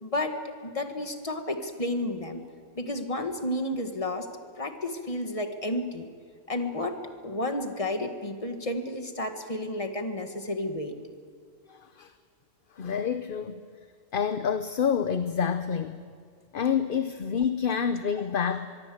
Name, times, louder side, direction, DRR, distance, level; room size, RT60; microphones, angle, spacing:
voice 1, 0.0-2.4 2.8-4.3 4.6-6.1 6.5-11.0, left 1 dB, 25° left, 6 dB, 1.9 m, -31 dB
voice 2, 11.7-12.1 12.8-13.6 14.1-16.0 16.5-18.7, left 7 dB, 50° left, 10 dB, 0.9 m, -28 dB
24.5 x 22.0 x 7.9 m, 2.1 s
omnidirectional pair, 1.3 m